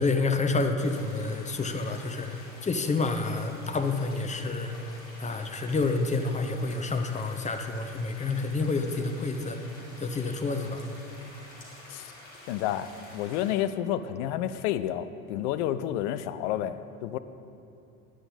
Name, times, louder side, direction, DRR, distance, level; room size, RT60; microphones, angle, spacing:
voice 1, 0.0-9.6 10.0-10.8, left 3 dB, 15° left, 5 dB, 0.9 m, -29 dB
sound 1, 0.8-13.5, left 1 dB, 70° left, 2.7 m, -49 dB
voice 2, 12.5-17.2, left 11 dB, 55° left, 12 dB, 0.6 m, -30 dB
14.5 x 10.0 x 4.0 m, 2.6 s
figure-of-eight pair, 65°, 42 cm